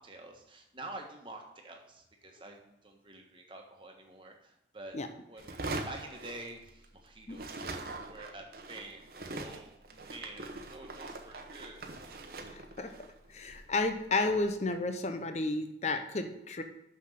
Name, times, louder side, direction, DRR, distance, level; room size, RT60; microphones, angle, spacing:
voice 1, 0.0-5.0 5.3-11.8, right 2 dB, 25° right, 2 dB, 1.4 m, -48 dB
sound 1, 5.4-7.0 7.3-14.5, right 2 dB, 55° right, 1.0 m, -43 dB
voice 2, 12.5-12.9 13.3-16.6, left 2 dB, 40° left, 6 dB, 0.8 m, -32 dB
6.4 x 6.1 x 7.5 m, 0.87 s
head